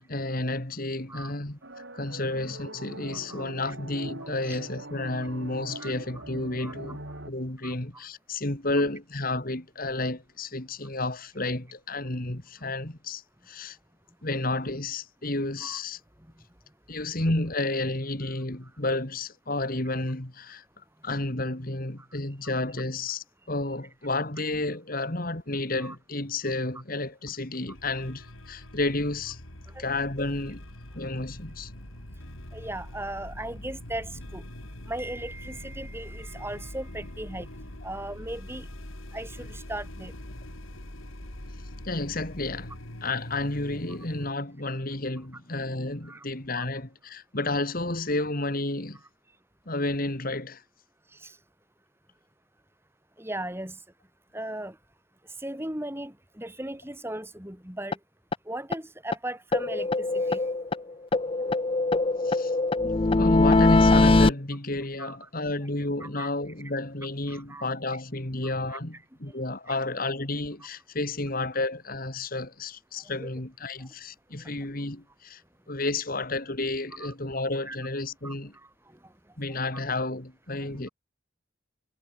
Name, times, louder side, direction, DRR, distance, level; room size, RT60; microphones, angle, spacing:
voice 1, 0.0-1.6 1.9-7.0 7.3-13.8 14.2-16.0 16.9-29.4 29.8-30.6 30.9-31.7 41.8-42.7 43.0-49.0 49.7-50.6 62.2-62.6 62.8-75.4 75.7-78.5 79.4-80.9, left 2 dB, 45° left, 2.4 m, -31 dB
sound 1, 1.6-7.3, right 1 dB, 65° right, 8.0 m, -42 dB
voice 2, 3.3-3.7 4.5-4.6 5.8-5.9 6.6-6.7 7.6-8.0 15.6-15.8 25.8-25.9 29.7-29.8 32.5-34.4 34.9-37.5 37.8-38.7 39.1-40.1 46.0-46.2 46.6-46.7 51.1-51.4 53.2-53.8 54.3-54.8 55.4-58.0 58.4-60.4 61.4-61.6 62.9-63.4 65.0-65.2 66.0-66.3 67.3-67.7 68.4-68.8 69.7-69.8 73.2-73.3 77.0-77.1 77.7-77.8 78.2-78.7 79.0-79.1 79.5-79.7 80.6-80.9, right 1 dB, 10° right, 3.4 m, -38 dB
sound 2, 27.7-44.3, left 1 dB, 90° left, 3.8 m, -43 dB
sound 3, 57.9-58.0 58.3-58.4 58.7-58.8 59.1-59.2 59.5-60.8 61.1-64.3, left 2 dB, 25° left, 0.5 m, -22 dB
head